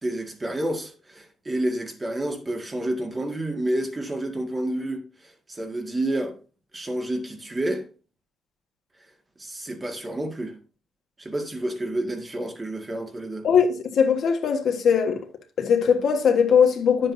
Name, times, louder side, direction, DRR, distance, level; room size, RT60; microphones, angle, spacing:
voice 1, 0.0-6.4 6.7-7.8 9.4-10.5 11.2-13.5, right 1 dB, 20° right, 1.7 m, -29 dB
voice 2, 13.4-15.2 15.6-17.1, left 7 dB, 65° left, 1.5 m, -20 dB
10.0 x 7.7 x 2.7 m
cardioid pair, 90°, 0 cm